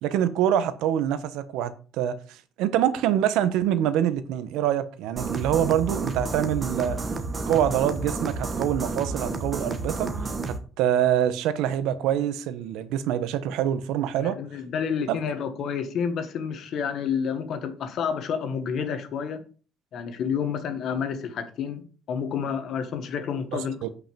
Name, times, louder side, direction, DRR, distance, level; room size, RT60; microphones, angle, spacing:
voice 1, 0.0-2.2 2.6-7.0 7.5-10.1 10.5-14.4 15.1-15.2 23.8-23.9, right 10 dB, 80° right, 1.2 m, -25 dB
sound 1, 5.2-10.6, right 3 dB, 20° right, 1.1 m, -31 dB
voice 2, 14.1-19.4 19.9-23.8, left 7 dB, 45° left, 1.7 m, -29 dB
8.6 x 5.7 x 7.0 m
cardioid pair, 180°, 0 cm